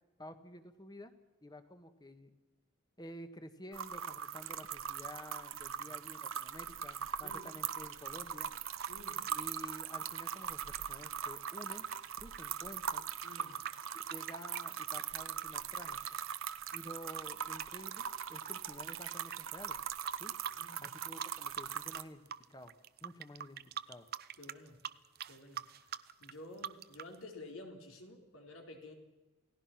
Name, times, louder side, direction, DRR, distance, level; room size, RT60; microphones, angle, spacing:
voice 1, 0.2-1.1 1.4-2.3 3.0-8.5 9.3-11.8 12.2-13.0 13.9-16.2 16.7-19.8 20.2-20.3 20.8-22.2 22.5-22.7 23.0-23.6 23.9-24.1, left 1 dB, 20° left, 9 dB, 1.6 m, -51 dB
sound 1, 3.7-22.0, right 8 dB, 80° right, 1.0 m, -41 dB
sound 2, 8.3-15.5 15.8-18.9 19.2-19.4 19.7-20.9 21.2-22.0 22.3-27.1, right 8 dB, 50° right, 0.7 m, -45 dB
voice 2, 8.9-9.2 13.2-13.6 20.5-20.9 24.4-24.8 25.3-28.9, left 2 dB, 80° left, 3 dB, 4.2 m, -52 dB
29.0 x 17.5 x 6.0 m, 1.1 s
head